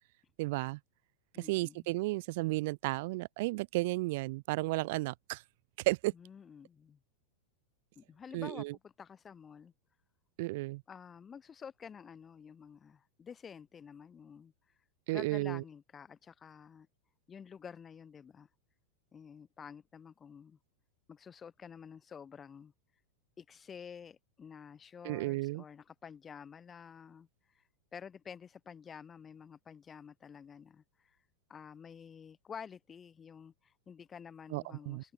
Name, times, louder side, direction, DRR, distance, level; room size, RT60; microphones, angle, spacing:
voice 1, 0.4-0.8 1.4-5.4 5.8-6.1 8.3-8.7 10.4-10.8 15.1-15.6 25.0-25.6 34.5-35.0, right 22 dB, 50° right, 1.6 m, -33 dB
voice 2, 1.3-1.9 6.1-7.0 7.9-9.7 10.9-14.5 15.1-16.9 17.3-18.5 19.1-20.6 21.1-22.7 23.4-27.3 27.5-27.6 27.9-31.2 31.5-35.1, left 7 dB, 20° left, 5.1 m, -50 dB
open air
figure-of-eight pair, 90°, 0 cm